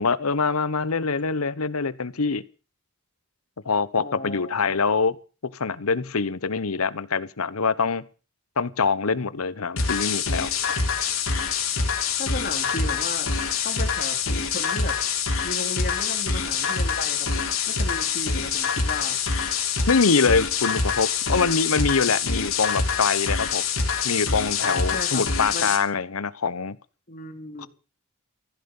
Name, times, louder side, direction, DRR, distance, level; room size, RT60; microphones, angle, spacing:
voice 1, 0.0-2.4 3.6-5.2 5.4-8.1 8.6-10.5 19.9-23.6 24.0-26.8 27.6-27.7, left 4 dB, 90° left, 17 dB, 0.9 m, -24 dB
voice 2, 4.0-4.8 10.7-10.9 12.2-13.3 13.6-15.0 15.4-17.3 17.7-19.2 24.6-25.2 25.5-25.7 27.1-27.7, left 2 dB, 45° left, 5 dB, 3.0 m, -35 dB
sound 1, 9.8-25.8, left 5 dB, 70° left, 3.5 m, -25 dB
15.0 x 10.5 x 7.1 m, 0.37 s
head